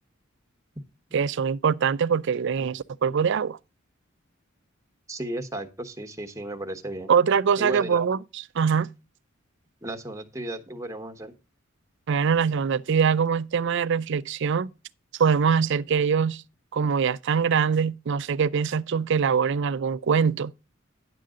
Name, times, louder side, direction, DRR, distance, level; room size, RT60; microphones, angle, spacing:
voice 1, 1.1-3.6 7.1-8.9 12.1-14.7 15.2-16.4 16.7-20.5, right 6 dB, 60° right, 0.4 m, -23 dB
voice 2, 5.1-7.1 7.6-8.0 9.8-11.3, right 1 dB, 15° right, 1.2 m, -34 dB
10.5 x 7.6 x 3.7 m
head